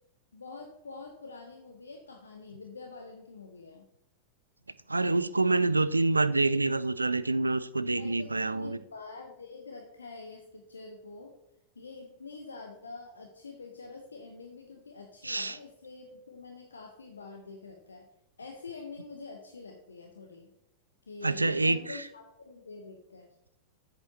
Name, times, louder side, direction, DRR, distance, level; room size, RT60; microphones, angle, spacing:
voice 1, 0.3-3.9 8.0-11.3 11.8-18.1 18.4-20.5 21.1-23.3, left 4 dB, 75° left, 0.8 m, -46 dB
voice 2, 4.9-8.8 15.2-15.6 21.2-22.0, right 2 dB, 80° right, 0.3 m, -27 dB
7.8 x 7.4 x 2.8 m
figure-of-eight pair, 90°, 0 cm